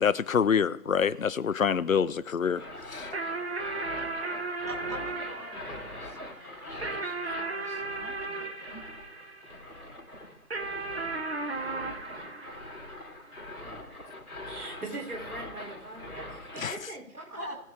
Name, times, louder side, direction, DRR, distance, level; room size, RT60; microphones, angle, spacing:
voice 1, 0.0-3.1 16.6-16.7, left 7 dB, 65° left, 0.6 m, -26 dB
sound 1, 2.4-16.9, left 1 dB, 80° left, 2.5 m, -43 dB
sound 2, 3.1-9.8 10.5-13.3, right 3 dB, 45° right, 1.2 m, -36 dB
voice 2, 4.7-8.8 17.4-17.6, equal, 10° right, 1.1 m, -45 dB
voice 3, 14.5-16.2 16.5-17.4, right 2 dB, 75° right, 3.3 m, -41 dB
18.5 x 6.6 x 3.6 m
figure-of-eight pair, 155°, 44 cm